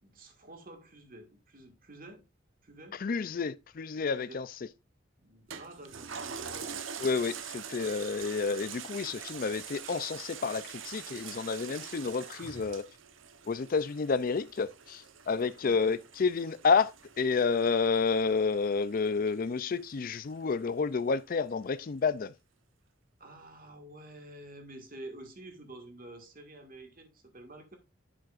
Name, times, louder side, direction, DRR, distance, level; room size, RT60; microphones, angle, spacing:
voice 1, 0.0-2.2 2.6-3.0 4.1-4.4 5.2-6.8 15.4-15.8 23.2-27.8, right 1 dB, 45° right, 1.9 m, -49 dB
voice 2, 3.0-4.5 7.0-12.8 13.5-16.9 17.2-22.3, left 5 dB, 45° left, 0.4 m, -30 dB
Toilet flush, 5.5-20.3 20.8-20.9, right 7 dB, 75° right, 1.0 m, -45 dB
10.5 x 7.6 x 2.5 m
head